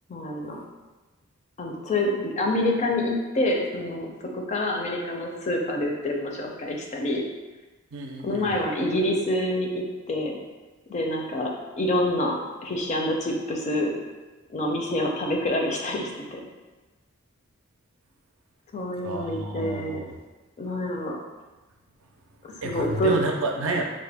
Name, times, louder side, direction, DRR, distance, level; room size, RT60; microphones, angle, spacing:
voice 1, 0.1-0.6 1.6-7.2 8.2-10.4 10.9-11.5 11.8-12.3 12.6-13.9 14.5-16.4 18.7-20.0 20.6-21.2 22.4-23.2, left 1 dB, 35° left, 0 dB, 0.4 m, -27 dB
voice 2, 7.9-8.6 19.0-20.1 22.6-23.8, right 2 dB, 70° right, 2 dB, 0.5 m, -30 dB
3.6 x 2.1 x 3.4 m, 1.2 s
head